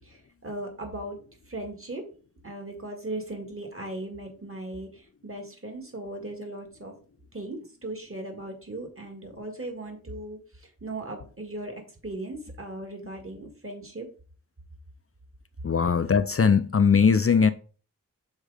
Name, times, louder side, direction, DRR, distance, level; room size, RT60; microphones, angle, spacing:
voice 1, 0.0-1.2 1.5-2.0 2.4-6.9 7.3-14.1, right 2 dB, 40° right, 2.0 m, -38 dB
voice 2, 15.6-17.5, left 6 dB, 45° left, 0.4 m, -20 dB
6.4 x 3.7 x 4.9 m
wide cardioid pair, 65°, 32 cm